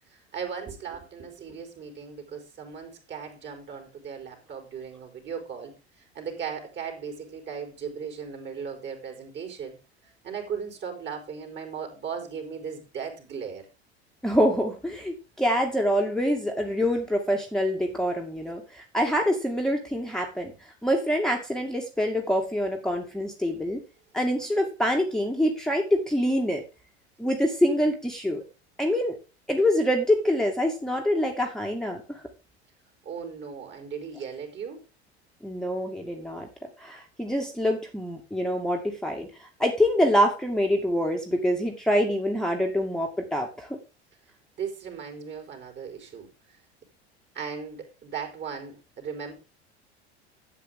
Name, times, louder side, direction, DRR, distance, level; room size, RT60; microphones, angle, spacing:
voice 1, 0.1-5.7 6.0-9.7 10.2-13.6 33.0-34.8 44.6-46.3 47.3-49.3, right 6 dB, 35° right, 5 dB, 4.4 m, -37 dB
voice 2, 14.2-20.5 20.8-23.8 24.1-26.6 27.2-28.4 28.8-29.2 29.5-32.2 35.4-36.5 36.8-43.8, equal, ahead, 1 dB, 2.1 m, -25 dB
12.0 x 8.5 x 3.8 m, 0.29 s
figure-of-eight pair, 75°, 33 cm